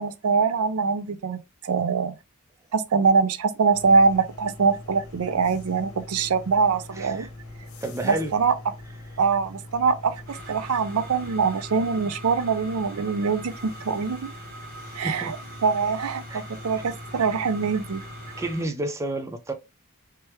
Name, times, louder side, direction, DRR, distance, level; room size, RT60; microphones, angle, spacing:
voice 1, 0.0-2.2 2.7-7.3 8.0-8.5 9.2-14.3 15.0-15.4 15.6-18.0, right 5 dB, 80° right, 0.5 m, -23 dB
sound 1, 3.7-18.5, left 2 dB, 75° left, 0.9 m, -42 dB
voice 2, 7.0-7.3 7.8-8.3 15.0-15.3 16.3-16.4 18.4-19.5, right 1 dB, 15° right, 0.4 m, -30 dB
sound 2, 10.3-18.6, right 2 dB, 40° right, 0.9 m, -43 dB
3.3 x 3.2 x 2.9 m
head